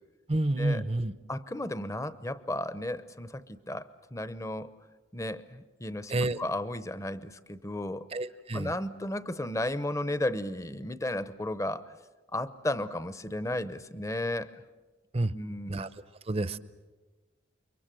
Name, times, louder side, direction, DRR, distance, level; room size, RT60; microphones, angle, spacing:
voice 1, 0.3-1.1 6.1-6.4 8.1-8.7 15.1-15.3 15.7-15.9 16.3-16.6, right 2 dB, 30° right, 15 dB, 0.8 m, -29 dB
voice 2, 1.3-4.7 5.1-8.1 8.5-11.9 12.3-14.6 15.3-15.9, left 1 dB, 15° left, 14 dB, 0.8 m, -34 dB
29.5 x 24.0 x 7.6 m, 1.2 s
head